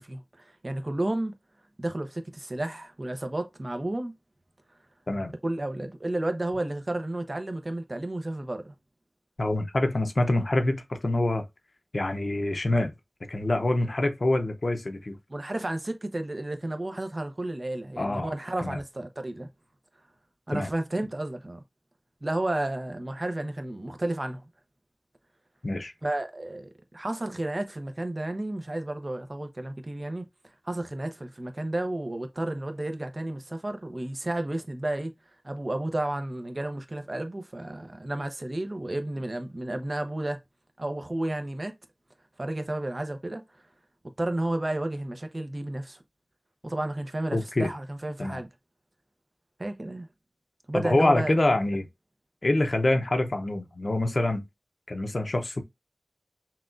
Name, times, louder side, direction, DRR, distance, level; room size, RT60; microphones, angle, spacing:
voice 1, 0.0-1.3 1.8-4.1 5.4-8.7 15.3-19.5 20.5-21.6 22.2-24.5 26.0-30.3 30.6-35.1 35.4-40.4 40.8-41.7 42.4-43.4 44.2-46.0 46.6-48.5 49.6-50.1 50.7-51.4, right 1 dB, 50° right, 0.8 m, -32 dB
voice 2, 9.4-11.4 11.9-12.9 13.3-15.2 18.0-18.3 18.6-18.8 20.5-20.7 25.6-25.9 47.3-47.7 48.2-48.4 50.7-51.8 52.4-54.4 54.9-55.6, left 2 dB, 70° left, 0.7 m, -25 dB
5.7 x 2.4 x 2.5 m
wide cardioid pair, 50°, 0 cm